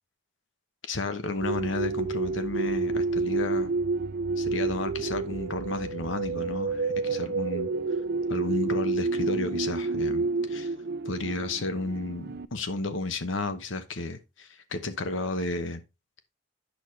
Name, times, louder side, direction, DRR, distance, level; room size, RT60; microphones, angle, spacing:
voice 1, 0.9-3.7 4.4-7.7 8.3-10.7 11.1-15.8, left 2 dB, 80° left, 1.0 m, -32 dB
sound 1, 1.4-12.5, right 3 dB, 55° right, 0.4 m, -29 dB
8.9 x 6.1 x 3.1 m
head